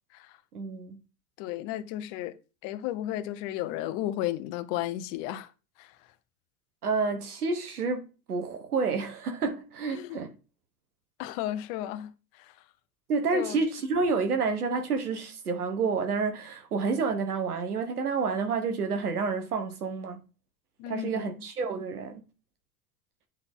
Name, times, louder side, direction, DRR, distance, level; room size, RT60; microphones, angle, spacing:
voice 1, 0.5-1.0 6.8-10.3 13.1-20.2 20.9-22.2, right 4 dB, 90° right, 1.3 m, -29 dB
voice 2, 1.4-2.4 2.6-5.5 5.8-6.1 9.9-10.2 11.2-12.6 13.3-13.6 20.8-21.4, left 13 dB, 55° left, 0.9 m, -34 dB
8.7 x 3.9 x 3.6 m
hypercardioid pair, 80°, 44 cm